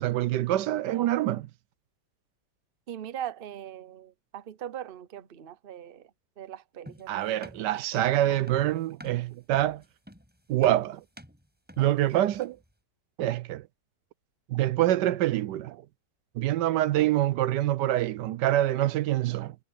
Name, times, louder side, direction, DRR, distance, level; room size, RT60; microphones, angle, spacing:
voice 1, 0.0-1.5 7.1-9.8 10.5-11.0 11.8-12.6 13.2-13.7 14.5-15.8 16.3-19.6, right 13 dB, 80° right, 1.3 m, -26 dB
voice 2, 2.9-6.1 6.4-7.4, right 10 dB, 40° right, 0.9 m, -40 dB
sound 1, 6.9-12.7, equal, 5° right, 6.9 m, -48 dB
omnidirectional pair, 1.9 m